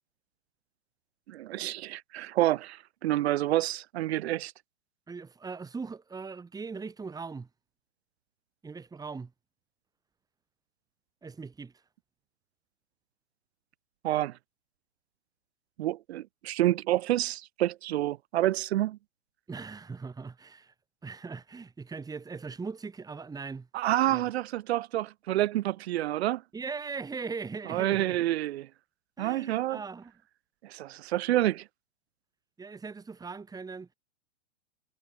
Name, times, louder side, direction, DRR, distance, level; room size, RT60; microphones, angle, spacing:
voice 1, 1.3-4.5 14.0-14.4 15.8-19.0 23.7-26.4 27.7-28.7 29.2-29.8 30.6-31.6, right 14 dB, 55° right, 3.6 m, -28 dB
voice 2, 5.1-7.5 8.6-9.3 11.2-11.7 19.5-20.7 21.0-23.7 24.1-24.3 26.5-28.2 29.2-30.1 32.6-33.9, right 4 dB, 10° right, 2.8 m, -40 dB
hypercardioid pair, 115°, 37 cm